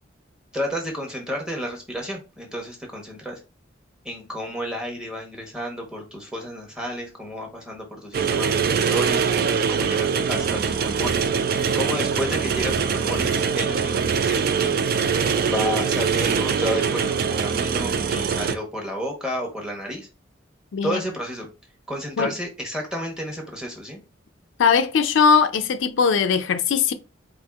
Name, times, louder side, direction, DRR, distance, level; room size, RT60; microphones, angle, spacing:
voice 1, 0.5-3.4 4.0-9.3 9.7-11.3 11.7-14.8 15.5-20.1 20.8-21.5 21.9-24.0, equal, 5° right, 1.0 m, -31 dB
sound 1, 8.1-18.5, right 6 dB, 50° right, 0.3 m, -23 dB
voice 2, 24.6-26.9, left 6 dB, 75° left, 0.4 m, -19 dB
4.3 x 2.5 x 2.3 m
head